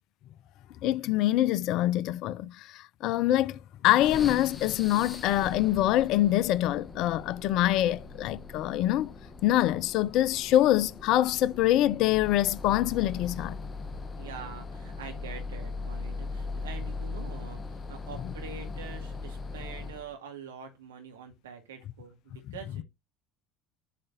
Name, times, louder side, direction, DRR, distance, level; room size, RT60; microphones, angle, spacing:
voice 1, 0.8-9.1 9.4-13.6, left 14 dB, 55° left, 0.5 m, -25 dB
sound 1, 4.0-20.2, left 3 dB, 25° left, 1.0 m, -40 dB
voice 2, 14.2-22.8, right 6 dB, 75° right, 2.2 m, -45 dB
7.8 x 4.9 x 3.9 m
figure-of-eight pair, 65°, 0 cm